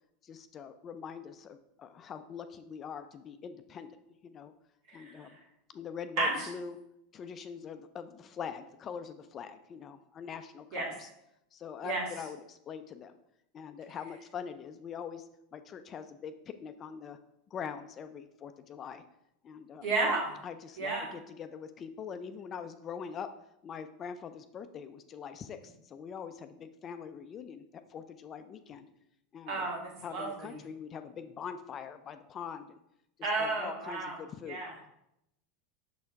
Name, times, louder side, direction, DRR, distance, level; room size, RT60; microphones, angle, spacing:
voice 1, 0.2-4.0 4.2-4.5 4.9-5.4 5.7-6.8 7.1-11.1 11.5-13.1 13.5-16.3 16.6-17.2 17.5-19.0 19.4-19.9 20.4-23.3 23.6-28.9 29.3-29.7 30.0-32.8 33.4-34.6, left 7 dB, 30° left, 9 dB, 0.4 m, -43 dB
voice 2, 4.9-5.4 6.2-6.5 10.7-10.9 11.8-12.1 19.8-20.3 20.8-21.1 29.5-30.5 33.2-34.2 34.5-34.7, right 3 dB, 55° right, -2 dB, 2.0 m, -32 dB
6.5 x 4.3 x 3.5 m, 0.81 s
figure-of-eight pair, 85°, 0 cm